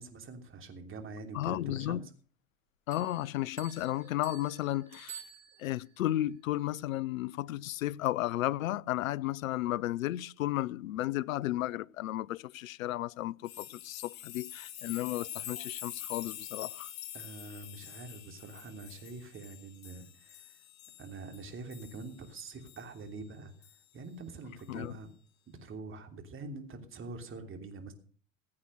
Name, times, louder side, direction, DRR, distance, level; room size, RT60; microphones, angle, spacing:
voice 1, 0.0-2.1 17.1-20.5 21.0-23.5 23.9-25.1 25.5-27.9, right 3 dB, 30° right, 3.1 m, -45 dB
voice 2, 1.3-2.1 2.9-5.2 5.6-16.9 24.7-25.0, left 15 dB, 80° left, 0.5 m, -33 dB
sound 1, 2.9-5.9, right 9 dB, 70° right, 6.8 m, -50 dB
sound 2, 13.5-22.1 22.7-22.8 23.6-23.7, left 11 dB, 60° left, 3.3 m, -45 dB
16.0 x 8.6 x 6.4 m
hypercardioid pair, 80°, 40 cm